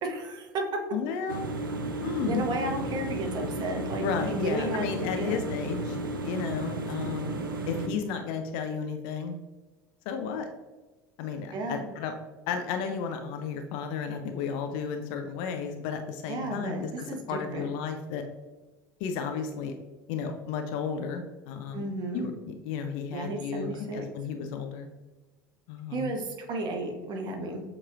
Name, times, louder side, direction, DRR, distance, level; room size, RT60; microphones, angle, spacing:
voice 1, 0.0-0.6 2.3-5.4 11.5-11.9 16.3-17.7 21.7-22.3 23.1-24.1 25.9-27.6, right 2 dB, 40° right, 3 dB, 0.9 m, -33 dB
voice 2, 0.9-1.5 2.0-2.4 4.0-6.0 6.2-7.4 7.7-9.4 10.1-10.5 11.2-12.1 12.5-18.2 19.0-19.7 20.1-21.9 22.1-24.9 25.7-26.1, left 6 dB, 50° left, 6 dB, 0.5 m, -33 dB
sound 1, 1.3-7.9, right 1 dB, 75° right, 0.4 m, -33 dB
7.2 x 3.0 x 2.4 m, 1.2 s
figure-of-eight pair, 70°, 11 cm